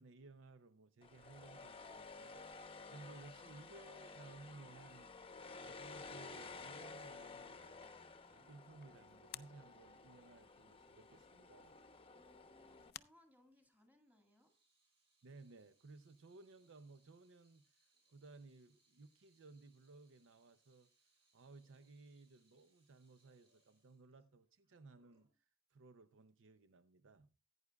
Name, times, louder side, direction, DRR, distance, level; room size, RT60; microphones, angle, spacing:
voice 1, 0.0-2.5 2.9-5.1 5.5-7.8 8.3-11.8 15.2-17.7 18.1-27.3, right 3 dB, 60° right, 0.6 m, -59 dB
sound 1, 1.0-12.9, left 4 dB, 25° left, 0.8 m, -54 dB
voice 2, 3.3-4.0 12.1-14.5, left 1 dB, 10° right, 2.0 m, -70 dB
sound 2, 6.7-13.9, left 13 dB, 45° left, 0.4 m, -61 dB
Water tap faucet / Sink (filling or washing), 14.0-25.3, right 2 dB, 25° right, 7.4 m, -79 dB
16.0 x 9.5 x 2.3 m
head